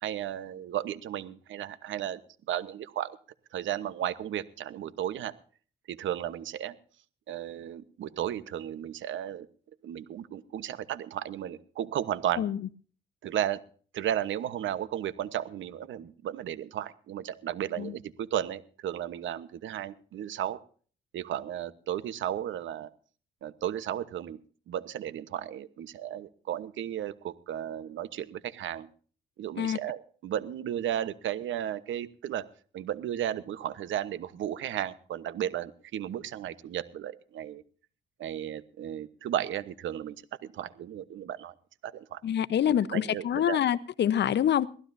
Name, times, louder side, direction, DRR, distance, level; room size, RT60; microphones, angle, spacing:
voice 1, 0.0-2.2 2.5-3.2 3.5-5.3 5.9-6.8 7.3-9.5 9.8-12.4 13.2-13.6 13.9-20.6 21.1-22.9 23.4-24.4 24.7-28.9 29.4-32.4 32.7-37.6 38.2-40.2 40.4-41.5 41.8-42.2 42.7-43.6, right 11 dB, 75° right, 15 dB, 1.1 m, -34 dB
voice 2, 42.2-44.7, left 10 dB, 60° left, 16 dB, 0.9 m, -26 dB
22.5 x 15.5 x 2.7 m, 0.43 s
cardioid pair, 85°, 20 cm